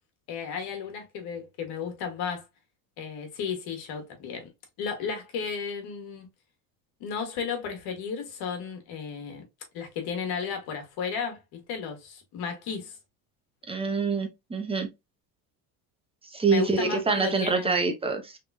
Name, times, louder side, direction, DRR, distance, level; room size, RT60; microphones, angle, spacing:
voice 1, 0.3-2.4 3.0-4.5 4.8-6.3 7.0-9.4 9.7-13.0 16.5-17.8, left 6 dB, 65° left, 1.7 m, -34 dB
voice 2, 13.7-14.9 16.3-18.4, right 4 dB, 15° right, 0.8 m, -26 dB
3.6 x 3.0 x 2.3 m
cardioid pair, 125°, 40 cm